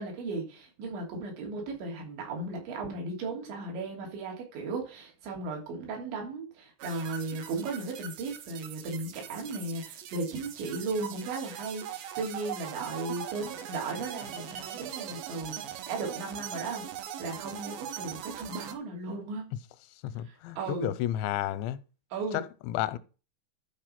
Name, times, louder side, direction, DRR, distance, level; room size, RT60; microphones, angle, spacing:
voice 1, 0.0-16.9 17.2-19.5 20.3-20.9 22.1-22.4, right 3 dB, 85° right, 5.4 m, -36 dB
sound 1, 6.8-18.7, right 9 dB, 65° right, 2.6 m, -41 dB
voice 2, 20.0-21.8 22.3-23.0, left 13 dB, 90° left, 2.9 m, -32 dB
11.5 x 4.9 x 5.8 m
omnidirectional pair, 5.1 m